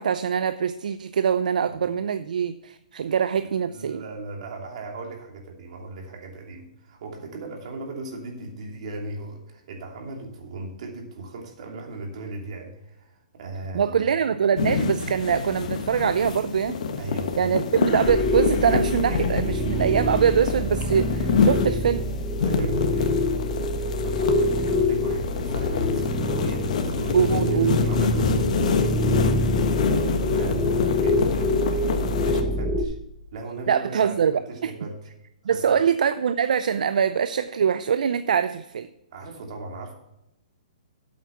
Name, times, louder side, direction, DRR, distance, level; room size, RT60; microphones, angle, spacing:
voice 1, 0.0-4.0 13.7-16.8 17.4-22.0 27.1-27.8 29.9-30.2 33.7-34.7 35.5-38.9, right 7 dB, 70° right, 13 dB, 0.5 m, -23 dB
voice 2, 3.7-14.1 17.0-17.5 22.4-23.2 24.0-29.0 29.3-29.4 29.8-33.0 33.3-35.1 35.4-35.8 39.1-39.9, right 2 dB, 50° right, 1 dB, 2.9 m, -37 dB
sound 1, 14.6-32.4, left 6 dB, 55° left, 1.3 m, -27 dB
sound 2, 18.0-32.9, left 1 dB, 5° left, 0.8 m, -26 dB
9.1 x 8.3 x 6.0 m, 0.85 s
hypercardioid pair, 155°, 4 cm